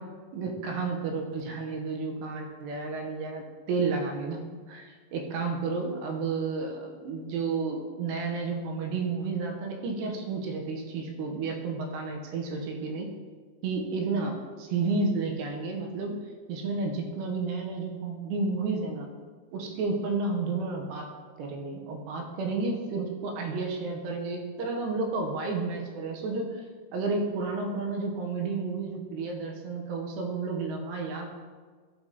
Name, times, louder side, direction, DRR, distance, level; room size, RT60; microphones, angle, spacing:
voice 1, 0.3-13.1 13.6-16.1 16.5-19.1 19.5-21.1 21.4-26.6 26.9-31.3, right 4 dB, 80° right, 1 dB, 3.0 m, -31 dB
13.0 x 4.8 x 3.9 m, 1.5 s
omnidirectional pair, 4.9 m